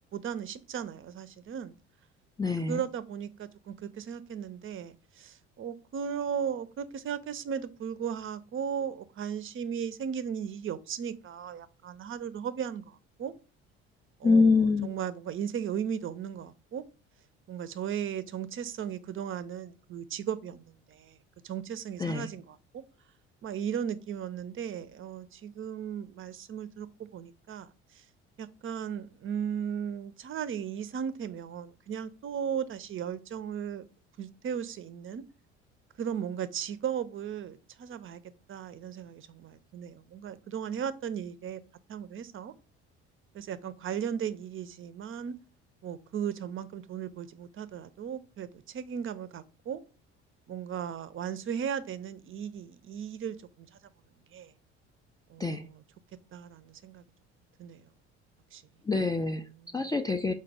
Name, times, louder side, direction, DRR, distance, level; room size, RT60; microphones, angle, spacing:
voice 1, 0.1-1.8 2.7-13.3 14.2-16.8 17.5-21.2 21.4-22.8 23.4-28.0 28.4-33.8 34.2-35.2 36.0-38.2 38.5-41.6 41.9-42.5 43.3-45.4 45.8-49.8 50.5-53.8 54.3-54.5 55.3-55.8 56.3-57.0 57.6-57.9 58.5-58.6 59.6-59.8, right 8 dB, 35° right, 0.5 m, -36 dB
voice 2, 2.4-2.8 14.2-14.9 22.0-22.3 55.4-55.6 58.8-59.5 59.7-60.3, left 4 dB, 10° left, 0.3 m, -25 dB
4.1 x 2.3 x 4.6 m
hypercardioid pair, 55°, 34 cm